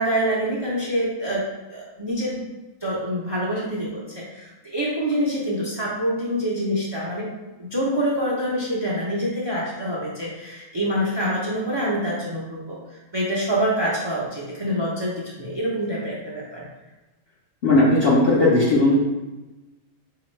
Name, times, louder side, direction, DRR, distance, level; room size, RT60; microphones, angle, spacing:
voice 1, 0.0-2.4 2.8-7.3 7.6-16.6, equal, 30° right, -6 dB, 0.5 m, -26 dB
voice 2, 17.6-18.9, left 2 dB, 55° left, -8 dB, 0.9 m, -17 dB
4.2 x 2.8 x 3.1 m, 1.1 s
omnidirectional pair, 1.4 m